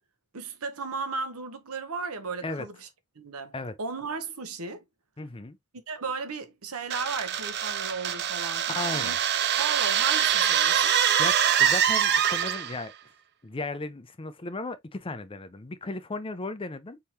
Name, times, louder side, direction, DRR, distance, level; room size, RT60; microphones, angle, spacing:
voice 1, 0.3-2.9 3.1-4.8 5.9-9.2 9.6-11.0, right 4 dB, 70° right, 0.9 m, -35 dB
voice 2, 5.2-5.6 8.7-9.2 11.2-12.9 13.4-17.0, left 3 dB, 25° left, 0.6 m, -35 dB
sound 1, 6.9-12.8, right 9 dB, 50° right, 0.5 m, -24 dB
4.5 x 3.6 x 2.8 m
head